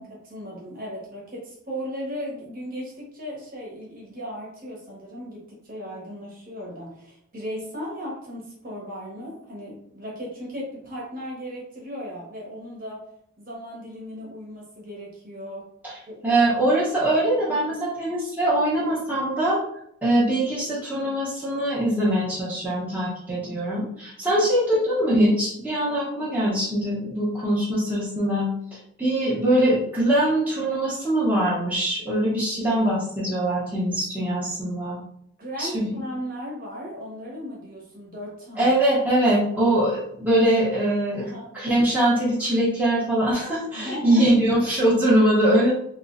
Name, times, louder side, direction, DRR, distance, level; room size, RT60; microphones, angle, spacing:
voice 1, 0.0-13.0 13.4-15.7 16.1-16.3 24.4-24.5 35.4-38.8 39.3-39.5 41.2-41.5 43.7-44.3, equal, 40° right, -4 dB, 1.1 m, -36 dB
voice 2, 16.2-19.6 20.0-28.5 29.0-35.0 35.6-35.9 38.6-45.7, right 1 dB, 10° right, -9 dB, 0.9 m, -22 dB
3.0 x 3.0 x 2.5 m, 0.69 s
head